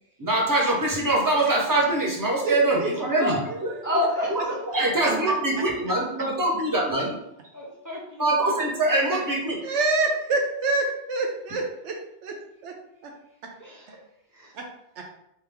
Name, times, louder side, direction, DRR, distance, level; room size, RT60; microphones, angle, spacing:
voice 1, 0.2-3.4 4.7-7.1 8.2-9.6, right 2 dB, 20° right, -3 dB, 0.9 m, -23 dB
voice 2, 2.4-2.9 3.2-3.6 4.8-5.1 9.1-9.2 9.6-12.0 12.2-12.3 12.6-12.7 13.0-13.1 14.5-14.6, right 3 dB, 80° right, 2 dB, 1.0 m, -27 dB
voice 3, 3.8-4.6 5.1-5.2 7.5-8.5 13.6-14.0 14.3-14.5, left 1 dB, 20° left, -4 dB, 0.6 m, -29 dB
3.5 x 3.0 x 3.4 m, 0.80 s
omnidirectional pair, 1.2 m